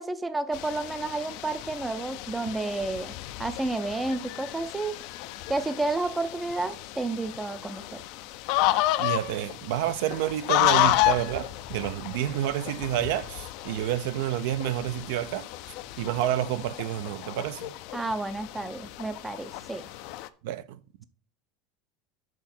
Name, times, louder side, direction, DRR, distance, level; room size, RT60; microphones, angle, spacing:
voice 1, 0.0-4.9 5.5-8.0 17.9-19.8, right 2 dB, 10° right, 0.4 m, -31 dB
sound 1, 0.5-20.3, left 16 dB, 55° left, 0.4 m, -31 dB
voice 2, 9.0-15.5 16.0-17.7 20.4-20.6, right 12 dB, 70° right, 0.5 m, -29 dB
6.1 x 5.9 x 4.3 m
cardioid pair, 165°, 0 cm